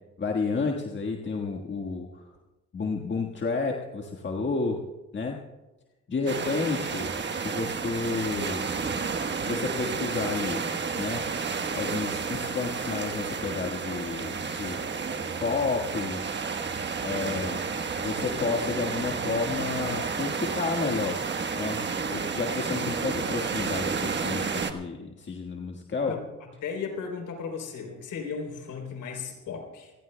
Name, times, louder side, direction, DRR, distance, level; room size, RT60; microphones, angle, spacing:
voice 1, 0.2-2.2 2.7-4.8 5.1-5.4 6.1-8.7 9.4-10.7 10.9-11.2 11.7-14.8 15.4-16.2 17.0-17.6 18.0-21.2 21.5-21.8 22.1-26.1, left 4 dB, 40° left, 0 dB, 1.6 m, -31 dB
sound 1, 6.3-24.7, right 5 dB, 35° right, 1.3 m, -31 dB
voice 2, 26.6-29.9, left 5 dB, 80° left, 3 dB, 3.6 m, -35 dB
28.0 x 16.5 x 2.3 m, 1.1 s
cardioid pair, 90°, 30 cm